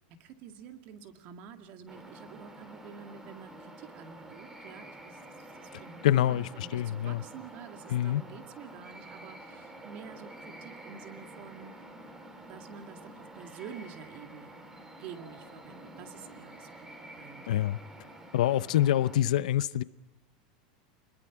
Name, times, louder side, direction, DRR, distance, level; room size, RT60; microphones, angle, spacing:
voice 1, 0.1-11.8 12.5-14.6 15.0-17.7, right 7 dB, 45° right, 2.1 m, -48 dB
sound 1, 1.9-19.2, right 1 dB, 10° right, 2.5 m, -49 dB
voice 2, 6.0-7.2 7.9-8.2 17.5-17.8 18.3-19.8, left 12 dB, 85° left, 0.7 m, -26 dB
25.5 x 21.5 x 6.0 m
supercardioid pair, 155°, 4 cm